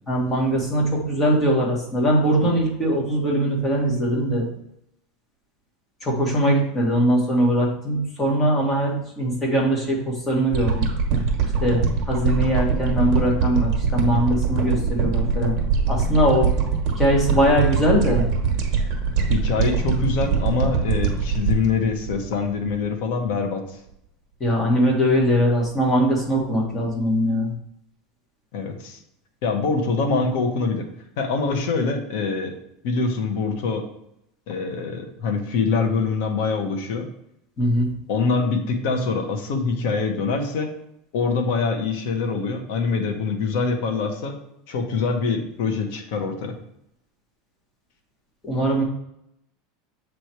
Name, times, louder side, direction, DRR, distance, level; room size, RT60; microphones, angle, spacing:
voice 1, 0.1-4.5 6.0-10.9 11.6-11.8 12.1-15.5 15.9-16.5 17.0-18.3 24.4-27.5 37.6-37.9 48.4-48.8, equal, 15° left, -2 dB, 1.7 m, -21 dB
sound 1, 10.5-22.9 23.3-23.4, right 5 dB, 45° right, 1.2 m, -23 dB
voice 2, 19.3-23.8 28.5-29.0 29.4-30.8 31.2-32.5 32.8-33.9 34.5-37.1 38.1-40.7 41.1-44.4 44.7-46.5, left 4 dB, 65° left, 3 dB, 1.1 m, -24 dB
7.8 x 3.3 x 4.5 m, 0.78 s
supercardioid pair, 160°, 0 cm